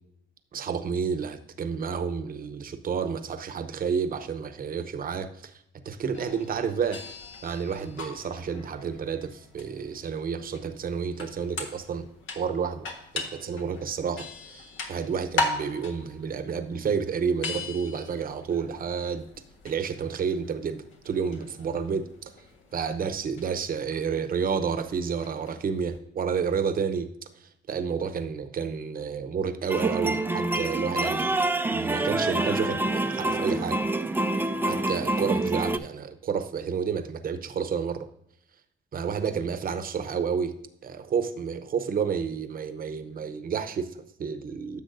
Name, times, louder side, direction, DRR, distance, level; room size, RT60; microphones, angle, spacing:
voice 1, 0.5-12.1 12.4-12.9 13.1-19.3 19.6-22.1 22.7-27.1 27.4-31.3 31.7-33.8 34.6-38.1 38.9-40.5 40.8-44.8, right 6 dB, 45° right, 10 dB, 0.8 m, -30 dB
sound 1, 6.1-26.0, left 3 dB, 75° left, 1.5 m, -39 dB
sound 2, 29.7-35.8, right 2 dB, 10° right, 0.4 m, -27 dB
10.5 x 7.0 x 2.6 m, 0.75 s
cardioid pair, 90°, 20 cm